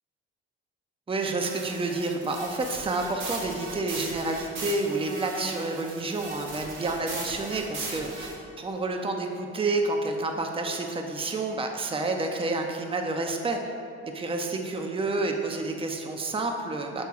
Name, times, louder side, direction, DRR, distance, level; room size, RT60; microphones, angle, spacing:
voice 1, 1.1-8.3 8.6-13.6 14.0-17.0, right 2 dB, 15° right, 3 dB, 0.7 m, -29 dB
sound 1, 1.4-8.3, right 2 dB, 80° right, 1.4 m, -38 dB
7.1 x 3.7 x 4.7 m, 2.4 s
hypercardioid pair, 55°, 33 cm